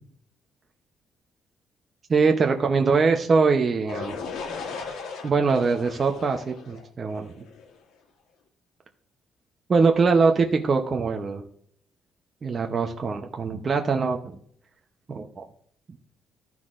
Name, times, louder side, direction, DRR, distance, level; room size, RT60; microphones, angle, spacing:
voice 1, 2.1-4.1 5.2-7.3 9.7-11.4 12.4-14.4 15.1-15.4, right 4 dB, 30° right, 4 dB, 0.7 m, -22 dB
sound 1, 3.9-7.8, left 5 dB, 80° left, 1.7 m, -37 dB
14.0 x 5.9 x 2.5 m, 0.65 s
cardioid pair, 145°, 0 cm